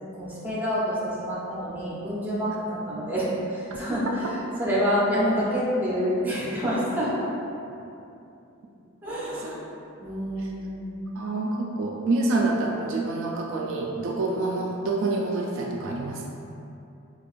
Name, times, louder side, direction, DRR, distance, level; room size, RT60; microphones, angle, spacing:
voice 1, 0.1-7.2 9.0-9.7 10.0-11.0, equal, 10° right, -8 dB, 0.7 m, -27 dB
voice 2, 9.1-9.5 10.4-10.5 11.2-16.3, right 2 dB, 65° right, -1 dB, 0.3 m, -27 dB
4.5 x 2.4 x 2.5 m, 2.7 s
head